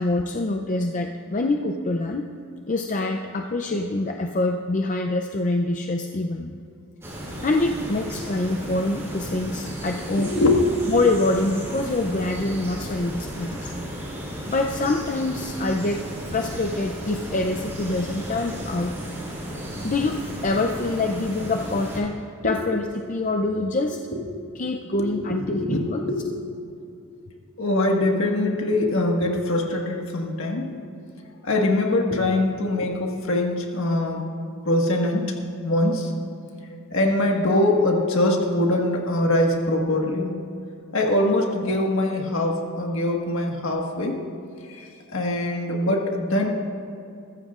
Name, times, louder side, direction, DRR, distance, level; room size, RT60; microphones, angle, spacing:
voice 1, 0.0-2.3 2.7-6.6 7.4-10.3 10.9-13.7 14.5-16.0 16.3-18.9 19.8-22.1 22.4-24.0 24.6-26.1, left 2 dB, 35° left, 4 dB, 0.5 m, -25 dB
sound 1, 7.0-22.0, equal, 10° right, 3.5 m, -34 dB
voice 2, 10.1-10.6 22.4-22.6 24.9-26.4 27.6-30.7 31.4-34.3 34.6-35.3 35.6-36.1 36.9-40.4 40.9-44.2 44.7-46.5, left 1 dB, 60° left, 1 dB, 1.6 m, -23 dB
22.5 x 14.5 x 2.5 m, 2.6 s
head